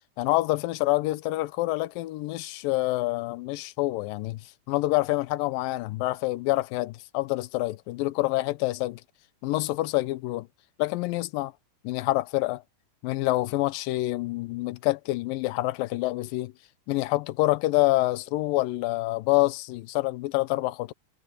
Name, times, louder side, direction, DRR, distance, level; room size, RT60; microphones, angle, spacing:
voice 1, 0.2-9.0 9.4-10.5 10.8-11.5 11.8-12.6 13.0-16.5 16.9-20.9, left 19 dB, 80° left, 2.0 m, -27 dB
omnidirectional pair, 4.8 m